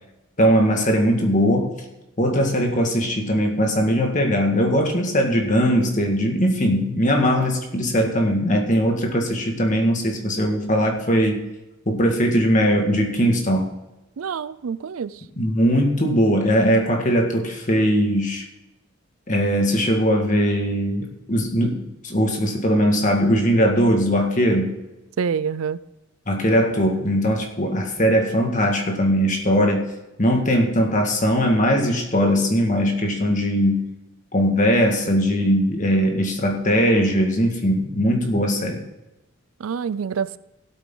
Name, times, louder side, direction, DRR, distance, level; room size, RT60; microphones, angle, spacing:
voice 1, 0.4-1.7 2.2-11.4 11.9-13.7 15.4-18.4 19.3-24.8 26.3-29.9 30.2-33.9 34.3-38.8, equal, 40° left, 1.9 m, -20 dB
voice 2, 14.2-15.2 25.2-25.8 39.6-40.4, right 6 dB, 90° right, 0.4 m, -26 dB
16.0 x 8.6 x 3.9 m
head